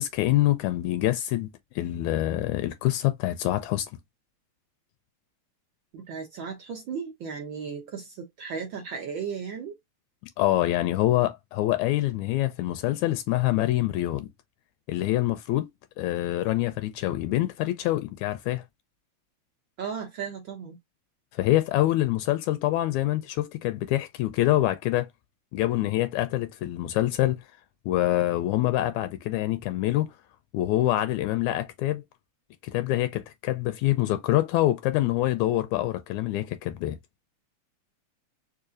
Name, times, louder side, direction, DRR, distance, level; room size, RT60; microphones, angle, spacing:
voice 1, 0.0-1.5 1.7-3.9 10.4-14.3 14.9-15.7 16.0-18.6 21.3-25.1 25.5-27.4 27.8-30.1 30.5-32.0 32.6-37.0, left 15 dB, 80° left, 1.8 m, -25 dB
voice 2, 5.9-9.8 19.8-20.8, right 6 dB, 75° right, 1.1 m, -35 dB
4.8 x 2.7 x 2.4 m
omnidirectional pair, 3.4 m